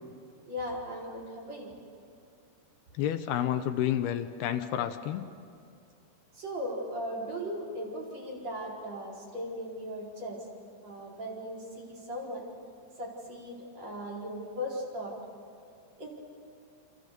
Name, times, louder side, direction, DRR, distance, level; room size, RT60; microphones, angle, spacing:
voice 1, 0.5-1.7 6.3-10.4 10.8-12.4 13.0-15.2 16.0-16.1, equal, 40° right, -3 dB, 5.6 m, -38 dB
voice 2, 3.0-5.3, left 11 dB, 80° left, 8 dB, 2.7 m, -30 dB
28.0 x 27.0 x 6.8 m, 2.4 s
omnidirectional pair, 4.8 m